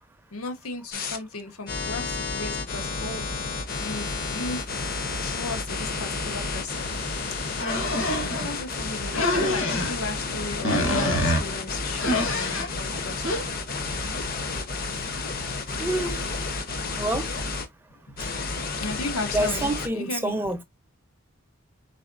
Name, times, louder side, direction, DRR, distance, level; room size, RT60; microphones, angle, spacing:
voice 1, 0.3-3.3 3.8-4.7 5.2-7.0 8.0-13.2 15.2-15.3 18.1-18.2 18.8-20.4, left 3 dB, 85° left, 1.1 m, -35 dB
sound 1, 0.9-1.2 1.7-17.7 18.2-19.9, left 3 dB, 45° left, 0.7 m, -31 dB
sound 2, 7.6-8.5 9.1-9.9 10.6-11.4 12.0-12.7 13.2-13.4, left 1 dB, 60° left, 1.3 m, -25 dB
voice 2, 15.8-16.3 16.9-17.3 18.2-18.3 19.3-20.6, right 1 dB, 10° right, 0.5 m, -27 dB
4.0 x 3.8 x 2.4 m
head